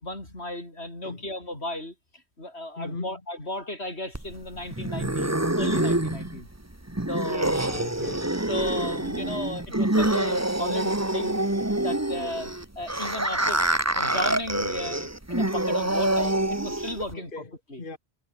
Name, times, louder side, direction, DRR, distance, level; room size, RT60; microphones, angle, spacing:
voice 1, 0.0-6.5 7.1-7.5 8.5-13.6 13.9-17.3 17.7-17.8, left 1 dB, 85° left, 8.0 m, -35 dB
voice 2, 2.8-3.2 7.5-8.3 17.1-17.5 17.8-18.0, left 3 dB, 55° left, 2.5 m, -38 dB
sound 1, 4.1-17.1, right 1 dB, 15° right, 1.7 m, -26 dB
omnidirectional pair, 1.1 m